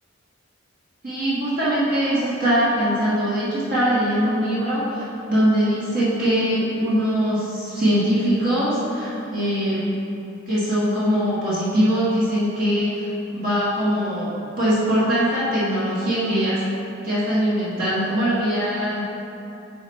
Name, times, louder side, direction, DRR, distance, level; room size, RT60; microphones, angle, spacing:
voice 1, 1.0-9.8 10.5-16.6 17.0-19.1, equal, 45° right, -10 dB, 1.6 m, -22 dB
8.9 x 4.9 x 3.1 m, 2.8 s
head